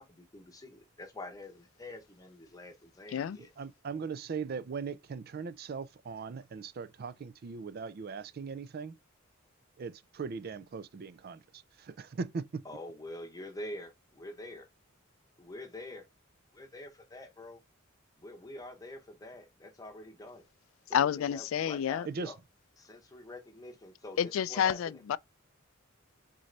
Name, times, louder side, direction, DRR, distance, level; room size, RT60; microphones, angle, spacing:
voice 1, 0.0-3.5 12.6-14.6 15.4-16.1 16.5-17.6 18.2-20.4 20.9-22.4 22.8-25.0, left 1 dB, 15° left, 0.8 m, -46 dB
voice 2, 3.6-9.0 9.8-12.6 22.1-22.3, right 5 dB, 50° right, 0.4 m, -39 dB
voice 3, 20.9-22.1 24.2-25.2, left 9 dB, 70° left, 0.3 m, -29 dB
4.1 x 3.8 x 3.2 m
head